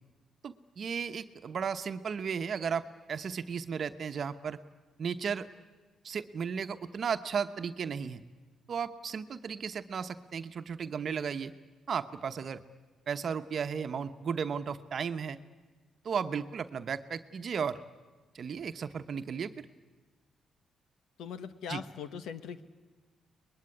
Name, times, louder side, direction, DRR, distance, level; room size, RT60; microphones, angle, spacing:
voice 1, 0.4-4.6 5.0-5.5 6.0-8.2 8.7-11.5 11.9-12.6 13.1-15.4 16.0-17.8 18.3-19.5 21.7-21.8, right 6 dB, 55° right, 10 dB, 1.0 m, -34 dB
voice 2, 21.2-22.6, left 7 dB, 85° left, 12 dB, 1.4 m, -40 dB
24.5 x 20.5 x 9.8 m, 1.3 s
cardioid pair, 80°, 0 cm